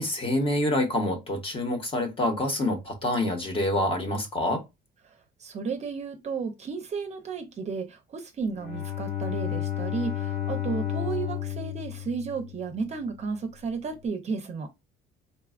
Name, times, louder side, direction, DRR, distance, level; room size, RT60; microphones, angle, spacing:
voice 1, 0.0-4.6, left 1 dB, 25° left, 0.9 m, -27 dB
voice 2, 5.4-14.7, right 5 dB, 35° right, 0.6 m, -33 dB
Bowed string instrument, 8.5-13.0, left 10 dB, 90° left, 1.5 m, -32 dB
4.1 x 2.3 x 2.3 m
cardioid pair, 130°, 20 cm